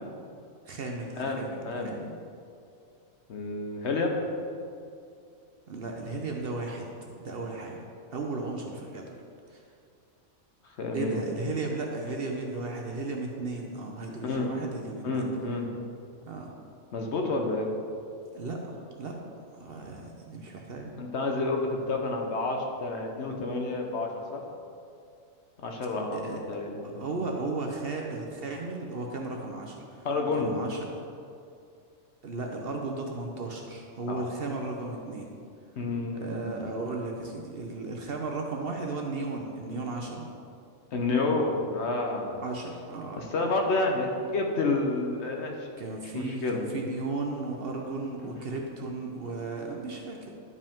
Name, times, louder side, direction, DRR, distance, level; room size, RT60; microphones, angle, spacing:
voice 1, 0.7-2.1 5.7-6.9 7.2-7.8 8.1-9.1 9.5-9.6 10.9-15.3 16.2-16.5 18.3-19.2 19.6-20.9 26.1-26.4 26.8-30.1 30.4-30.8 32.2-35.3 36.1-40.3 42.4-43.3 45.8-50.3, right 3 dB, 55° right, 1 dB, 0.8 m, -35 dB
voice 2, 1.2-2.0 3.3-4.2 10.8-11.5 14.2-14.5 15.0-15.7 16.9-17.7 21.0-24.5 25.6-27.0 30.0-30.5 34.1-34.3 35.8-36.6 40.9-42.4 43.2-45.7 46.1-46.6, left 3 dB, 60° left, 2 dB, 1.0 m, -29 dB
11.0 x 5.1 x 3.6 m, 2.4 s
omnidirectional pair, 1.4 m